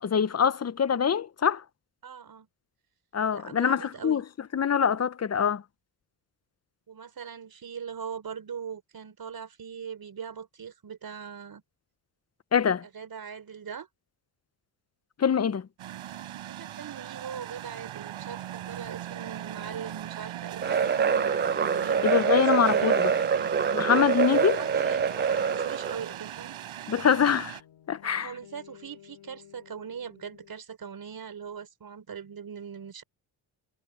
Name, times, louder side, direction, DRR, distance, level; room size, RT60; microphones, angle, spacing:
voice 1, 0.0-1.6 3.1-4.2 4.5-5.6 12.5-12.8 15.2-15.7 22.0-23.1 23.7-24.6 26.9-27.6 27.9-28.3, left 7 dB, 30° left, 0.9 m, -24 dB
voice 2, 2.0-2.5 3.3-4.2 6.9-11.6 12.8-13.9 16.5-21.4 21.6-23.5 24.3-26.6 28.0-33.0, right 7 dB, 45° right, 4.5 m, -41 dB
sound 1, 15.8-27.6, right 12 dB, 75° right, 5.8 m, -39 dB
sound 2, 20.6-26.1, right 6 dB, 20° right, 0.5 m, -25 dB
sound 3, 21.0-30.5, left 11 dB, 70° left, 3.8 m, -55 dB
cardioid pair, 95°, 48 cm